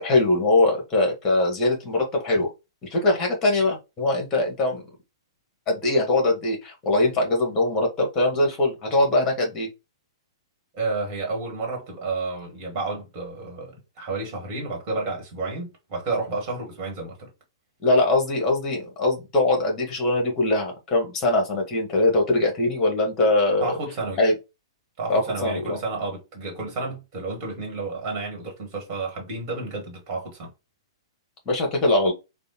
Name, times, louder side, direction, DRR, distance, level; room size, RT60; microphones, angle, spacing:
voice 1, 0.0-2.5 2.8-4.8 5.7-9.7 17.8-23.7 24.2-24.3 25.1-25.8 31.4-32.1, left 2 dB, 20° left, 1.5 m, -22 dB
voice 2, 10.7-17.3 23.6-24.2 25.0-30.5, right 3 dB, 35° right, 1.6 m, -31 dB
3.5 x 2.3 x 2.8 m
figure-of-eight pair, 110°, 3 cm